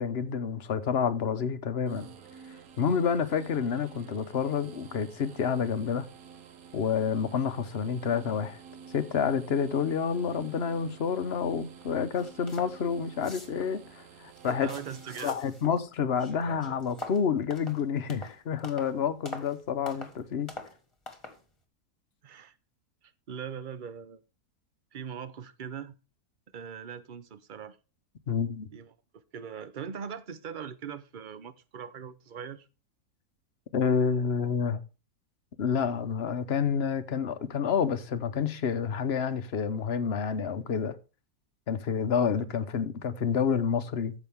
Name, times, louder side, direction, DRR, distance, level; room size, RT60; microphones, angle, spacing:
voice 1, 0.0-2.1 2.8-6.1 6.7-8.6 8.9-14.7 15.2-20.5 28.3-28.7 33.7-34.8 35.6-41.0 41.7-44.1, left 6 dB, 50° left, 1.0 m, -29 dB
sound 1, 1.8-15.2, right 7 dB, 65° right, 1.4 m, -50 dB
sound 2, 11.8-11.9 12.2-12.8 13.1-13.8 14.3-15.8 16.1-19.0 19.3-19.6 19.9-20.2 20.5-20.8 21.1-21.4, left 2 dB, 20° left, 1.9 m, -44 dB
voice 2, 14.4-15.4 22.2-22.5 23.3-24.2 24.9-26.0 26.5-27.8 28.7-28.9 29.3-32.7, right 7 dB, 45° right, 0.7 m, -40 dB
14.0 x 6.3 x 3.5 m
omnidirectional pair, 1.6 m